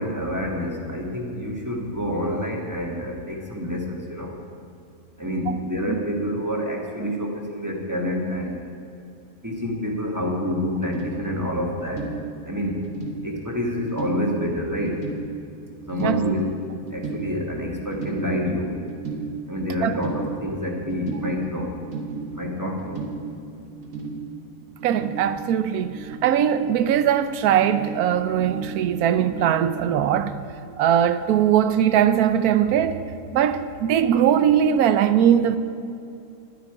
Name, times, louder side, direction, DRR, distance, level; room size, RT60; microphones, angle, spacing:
voice 1, 0.0-4.3 5.2-8.6 9.4-12.0 12.5-12.8 13.2-14.9 15.9-16.5 16.9-18.7 19.5-21.7 22.3-23.0, equal, 15° right, 1.6 m, -27 dB
sound 1, 10.7-30.2, right 4 dB, 65° right, 1.7 m, -36 dB
voice 2, 24.8-30.3 30.8-33.0 33.3-35.6, right 9 dB, 85° right, 1.1 m, -20 dB
12.5 x 11.5 x 4.8 m
omnidirectional pair, 1.6 m